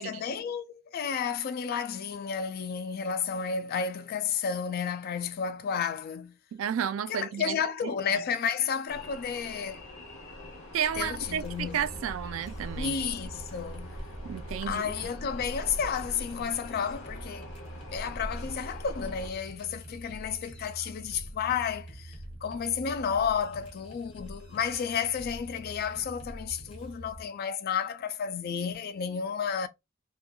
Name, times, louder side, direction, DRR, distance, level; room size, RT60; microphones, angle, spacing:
voice 1, 0.0-6.3 7.1-9.8 11.0-11.8 12.8-14.0 14.6-17.5 17.9-29.7, left 7 dB, 50° left, 0.3 m, -32 dB
voice 2, 6.5-7.6 10.7-12.9 14.2-14.8, right 9 dB, 75° right, 0.3 m, -32 dB
sound 1, 8.9-19.3, equal, 75° left, 1.1 m, -42 dB
sound 2, 10.9-27.2, right 1 dB, 25° left, 0.9 m, -45 dB
3.1 x 2.2 x 2.2 m
head